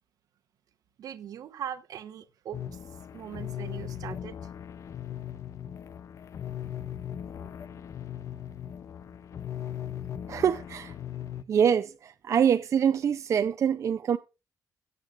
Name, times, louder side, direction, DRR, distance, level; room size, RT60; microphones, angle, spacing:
voice 1, 1.0-2.8 3.1-4.3, right 9 dB, 75° right, 0.9 m, -40 dB
sound 1, 2.5-11.4, left 10 dB, 55° left, 0.5 m, -39 dB
voice 2, 10.3-10.9 11.5-14.2, right 8 dB, 55° right, 0.5 m, -25 dB
16.5 x 8.2 x 2.4 m
cardioid pair, 120°, 6 cm